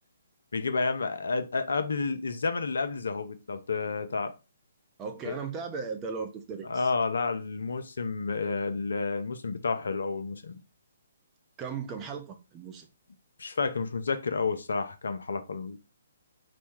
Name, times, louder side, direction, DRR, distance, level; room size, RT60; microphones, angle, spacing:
voice 1, 0.5-4.3 5.3-5.4 6.7-10.5 13.4-15.8, left 4 dB, 70° left, 0.5 m, -30 dB
voice 2, 5.0-6.9 11.6-12.9, right 5 dB, 20° right, 0.7 m, -37 dB
4.3 x 2.2 x 4.4 m
figure-of-eight pair, 135°, 0 cm